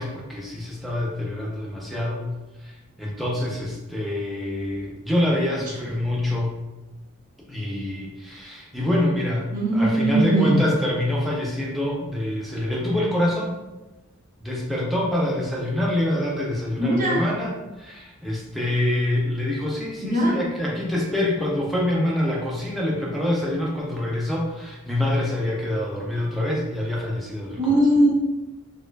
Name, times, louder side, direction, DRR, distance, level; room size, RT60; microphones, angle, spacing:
voice 1, 0.0-2.2 2.6-2.7 3.0-6.6 7.5-13.6 14.4-27.6, left 1 dB, ahead, -4 dB, 0.5 m, -26 dB
voice 2, 5.5-5.8 9.5-10.6 16.8-17.2 20.0-20.4 27.6-28.1, right 1 dB, 40° right, -5 dB, 0.9 m, -20 dB
4.2 x 2.4 x 2.2 m, 1.1 s
head